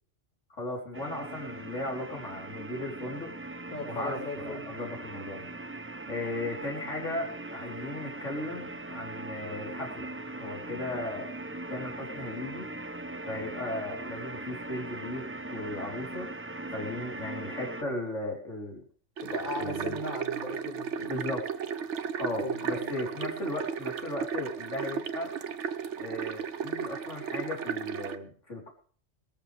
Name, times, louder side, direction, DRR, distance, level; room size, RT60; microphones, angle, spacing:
voice 1, 0.5-3.3 3.8-5.5 6.1-10.1 10.4-11.3 11.7-12.7 13.2-16.3 16.7-18.8 19.6-20.0 21.0-21.5 22.2-25.3 26.0-28.7, left 1 dB, 85° left, -1 dB, 4.5 m, -36 dB
sound 1, 0.9-17.8, right 2 dB, 15° right, 0.5 m, -40 dB
voice 2, 3.7-4.6 17.8-17.9 19.2-21.1 22.4-22.9, left 2 dB, 35° left, 0 dB, 3.5 m, -37 dB
sound 2, 19.2-28.2, right 7 dB, 75° right, 1.2 m, -34 dB
20.5 x 13.5 x 3.5 m, 0.44 s
omnidirectional pair, 1.2 m